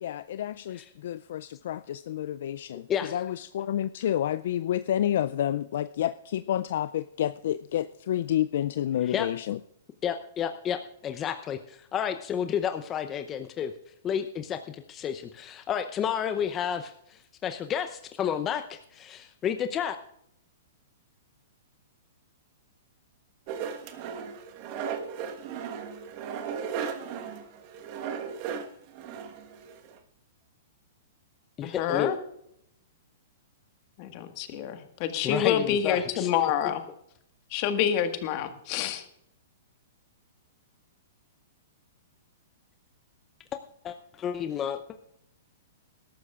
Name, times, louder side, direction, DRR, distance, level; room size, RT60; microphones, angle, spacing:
voice 1, 0.0-9.6, left 11 dB, 65° left, 14 dB, 0.4 m, -29 dB
voice 2, 2.9-3.2 9.0-9.3 10.0-13.7 14.0-20.0 31.6-32.2 35.2-36.3 43.8-45.0, left 8 dB, 25° left, 8 dB, 0.7 m, -31 dB
sound 1, 23.5-29.9, right 7 dB, 45° right, 1.3 m, -36 dB
voice 3, 31.6-32.2 34.0-36.8 37.5-39.0, left 9 dB, 45° left, 7 dB, 1.6 m, -27 dB
21.0 x 12.5 x 2.4 m, 0.75 s
hypercardioid pair, 120°, 0 cm